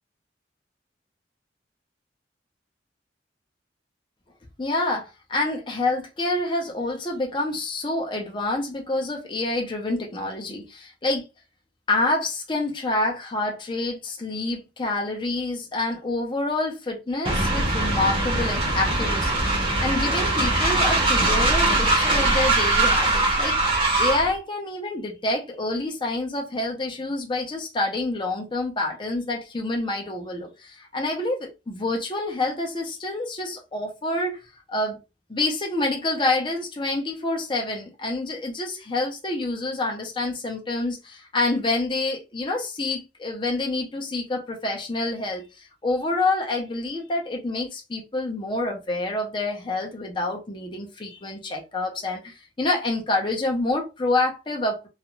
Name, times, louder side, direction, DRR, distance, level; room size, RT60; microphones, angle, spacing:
voice 1, 4.6-11.3 11.9-34.4 34.7-35.0 35.3-54.9, left 2 dB, 25° left, 0.6 m, -27 dB
Train, 17.2-24.3, right 2 dB, 30° right, 0.8 m, -21 dB
2.4 x 2.1 x 3.0 m
head